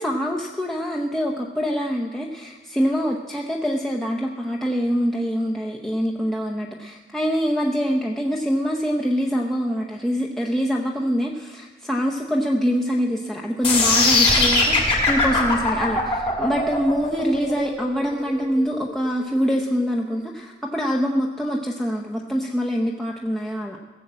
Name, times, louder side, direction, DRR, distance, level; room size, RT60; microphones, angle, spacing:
voice 1, 0.0-23.8, equal, ahead, -2 dB, 0.7 m, -24 dB
sound 1, 13.6-19.7, left 3 dB, 30° left, 2.6 m, -20 dB
17.0 x 7.3 x 7.4 m, 1.2 s
head